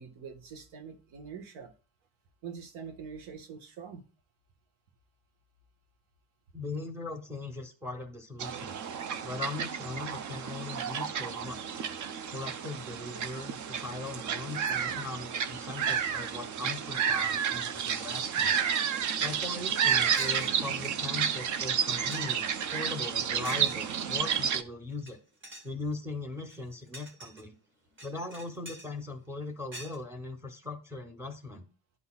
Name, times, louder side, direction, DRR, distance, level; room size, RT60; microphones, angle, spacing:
voice 1, 0.0-1.7 2.4-4.0, right 6 dB, 80° right, 7 dB, 1.5 m, -44 dB
voice 2, 6.5-8.8 9.2-11.9 12.3-18.6 19.2-25.2 25.6-27.5 28.0-31.6, left 3 dB, 5° right, 5 dB, 0.8 m, -39 dB
sound 1, 8.4-24.6, right 7 dB, 40° right, 0.5 m, -31 dB
sound 2, 19.6-19.7 20.1-21.0 21.5-21.6 21.9-22.4 23.4-24.0 24.9-25.1 25.4-25.7 26.4-27.4 28.0-28.9 29.7-30.0, equal, 25° right, 1.7 m, -45 dB
11.5 x 4.0 x 2.3 m, 0.35 s
cardioid pair, 175°, 47 cm